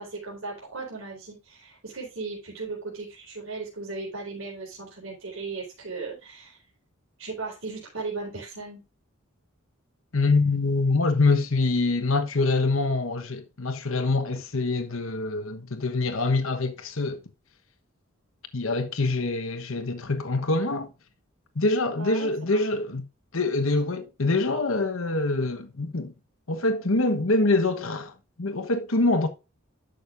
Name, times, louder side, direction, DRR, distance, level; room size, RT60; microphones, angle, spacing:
voice 1, 0.0-6.6 7.2-8.8 21.9-22.6, right 3 dB, 70° right, 4.3 m, -37 dB
voice 2, 10.1-17.2 18.5-20.9 21.5-23.0 23.3-26.1 26.5-28.1 28.4-29.3, left 3 dB, 75° left, 1.2 m, -25 dB
12.0 x 6.4 x 2.6 m
head